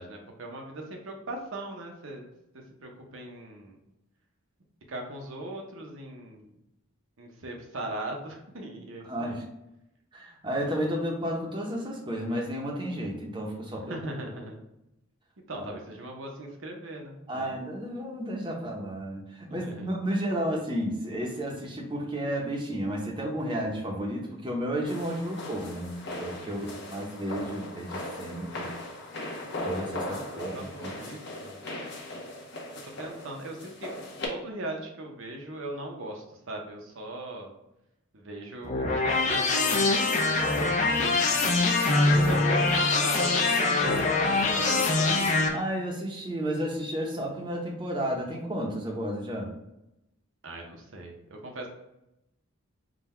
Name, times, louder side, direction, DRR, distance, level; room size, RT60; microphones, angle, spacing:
voice 1, 0.0-2.3 2.8-3.8 4.9-6.5 7.2-9.4 13.9-14.6 15.5-17.7 19.6-19.9 26.6-27.0 30.1-30.2 30.5-31.6 32.8-33.9 34.3-37.5 38.1-41.5 41.9-44.1 44.4-45.6 50.4-51.7, right 1 dB, 70° right, 1 dB, 0.8 m, -39 dB
voice 2, 9.0-9.4 10.1-13.9 17.3-28.7 29.6-30.9 45.5-49.5, equal, 25° right, 0 dB, 0.7 m, -32 dB
sound 1, 24.8-34.3, left 2 dB, 55° left, 0.8 m, -38 dB
sound 2, 38.6-45.5, left 3 dB, 35° left, 0.5 m, -24 dB
3.8 x 2.3 x 4.2 m, 0.86 s
head